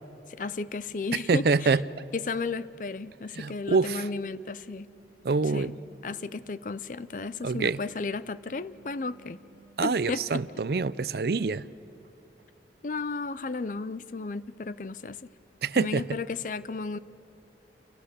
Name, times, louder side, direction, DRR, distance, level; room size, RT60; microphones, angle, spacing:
voice 1, 0.3-1.7 2.1-4.9 5.5-5.7 6.0-9.4 9.8-10.4 12.8-15.3 15.8-17.0, left 4 dB, 45° left, 16 dB, 0.5 m, -34 dB
voice 2, 1.3-1.8 3.4-4.1 5.2-5.8 7.4-7.8 9.8-11.7 15.6-16.2, right 4 dB, 60° right, 18 dB, 0.5 m, -26 dB
sound 1, 2.6-12.7, right 3 dB, 85° left, 3.6 m, -59 dB
29.0 x 17.5 x 6.8 m, 3.0 s
head